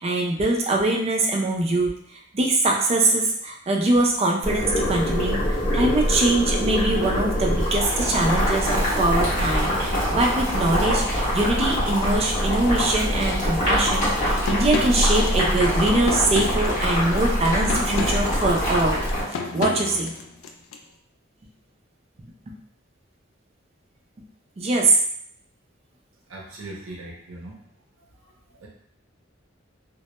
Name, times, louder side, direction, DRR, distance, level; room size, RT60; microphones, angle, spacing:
voice 1, 0.0-1.9 2.3-5.4 5.7-19.0 19.5-20.1 24.6-24.9, right 2 dB, 30° right, 0 dB, 0.4 m, -23 dB
Boiling, 4.4-19.2, equal, 40° left, 0.9 m, -24 dB
sound 1, 14.4-20.8, left 4 dB, 80° left, 0.3 m, -31 dB
voice 2, 26.3-27.6 28.6-28.7, right 2 dB, 85° right, -2 dB, 0.5 m, -39 dB
2.1 x 2.1 x 2.8 m, 0.67 s
head